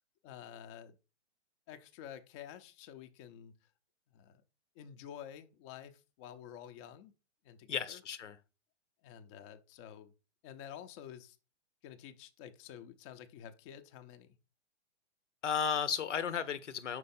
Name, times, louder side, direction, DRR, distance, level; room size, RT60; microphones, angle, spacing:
voice 1, 0.2-1.0 1.7-3.6 4.1-4.4 4.7-7.1 7.4-8.0 9.0-10.1 10.4-11.4 11.8-14.4, left 9 dB, 25° left, 0.5 m, -50 dB
voice 2, 7.7-8.4 15.4-17.0, left 7 dB, 90° left, 0.8 m, -34 dB
5.6 x 4.5 x 4.1 m
hypercardioid pair, 135°, 35 cm